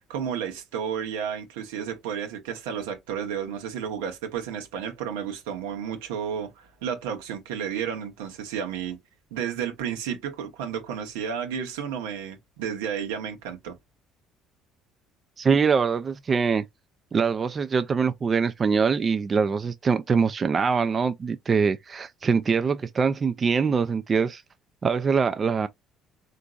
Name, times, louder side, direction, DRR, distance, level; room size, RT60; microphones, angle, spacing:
voice 1, 0.0-9.0 9.3-13.7, right 8 dB, 90° right, 0.8 m, -32 dB
voice 2, 15.4-16.6 17.1-24.4 24.8-25.7, right 5 dB, 35° right, 0.3 m, -23 dB
3.7 x 2.5 x 2.3 m
supercardioid pair, 75°, 0 cm